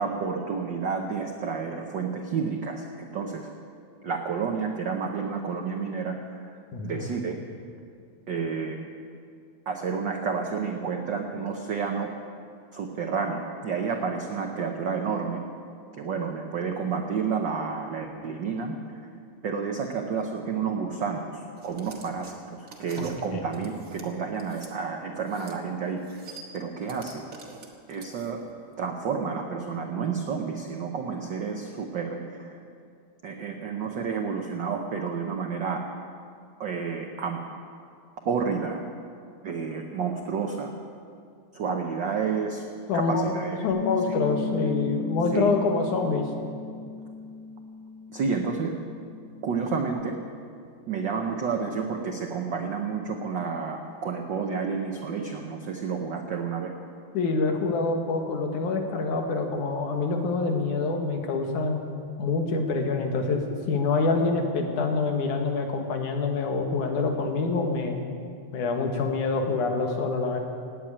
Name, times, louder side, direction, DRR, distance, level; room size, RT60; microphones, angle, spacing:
voice 1, 0.0-3.5 4.0-6.2 6.4-6.6 6.8-7.4 8.3-8.8 9.7-12.1 12.7-15.4 15.9-18.8 19.4-26.0 26.5-27.2 27.9-28.4 28.8-32.6 33.2-35.8 36.6-37.4 38.2-38.8 39.4-40.7 41.5-42.6 42.9-43.7 45.3-45.5 48.1-48.7 49.4-50.2 50.9-56.7, right 5 dB, 80° right, 3 dB, 1.0 m, -30 dB
voice 2, 6.7-7.1 23.0-23.1 23.3-23.4 42.9-43.4 43.6-46.2 57.1-61.8 62.2-68.0 68.5-70.4, left 4 dB, 85° left, 4 dB, 3.0 m, -26 dB
sound 1, 21.6-24.7 25.2-25.6 25.9-28.5, right 4 dB, 40° right, 1.2 m, -46 dB
Bass guitar, 43.7-49.9, left 6 dB, 45° left, 4.8 m, -36 dB
18.0 x 9.0 x 8.8 m, 2.3 s
omnidirectional pair, 3.4 m